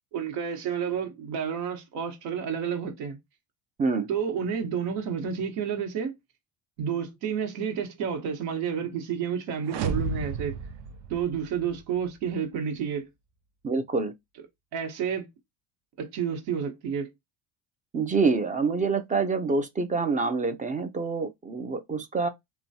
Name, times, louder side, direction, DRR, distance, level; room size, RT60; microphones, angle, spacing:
voice 1, 0.1-3.2 4.1-6.1 6.8-10.6 11.1-13.1 14.7-15.3 16.0-17.1, right 7 dB, 80° right, 1.2 m, -30 dB
voice 2, 3.8-4.1 13.6-14.1 17.9-22.3, right 4 dB, 20° right, 0.3 m, -26 dB
sound 1, 9.6-11.8, right 6 dB, 60° right, 0.7 m, -32 dB
3.0 x 2.2 x 2.7 m
supercardioid pair, 105°, 44 cm